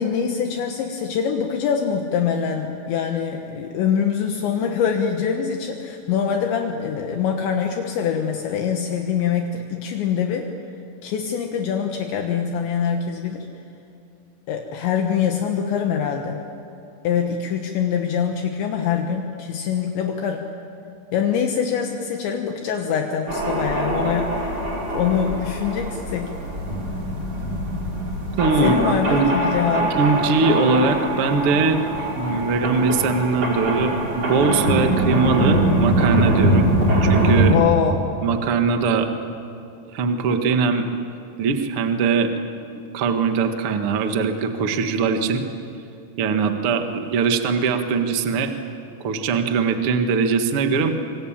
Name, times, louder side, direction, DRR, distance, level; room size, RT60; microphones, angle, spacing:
voice 1, 0.0-10.5 11.0-13.5 14.5-16.4 17.1-20.5 21.1-26.3 28.6-30.0 37.4-38.0, left 7 dB, 75° left, 3 dB, 3.5 m, -24 dB
sound 1, 23.3-37.5, right 1 dB, 30° right, 5.6 m, -23 dB
voice 2, 28.4-29.3 29.7-31.8 32.1-36.7 37.0-37.6 38.2-39.1 39.9-40.9 41.4-42.3 42.9-45.4 46.2-48.5 49.0-50.9, right 4 dB, 85° right, 6 dB, 1.2 m, -21 dB
25.5 x 25.5 x 8.9 m, 2.7 s
omnidirectional pair, 5.5 m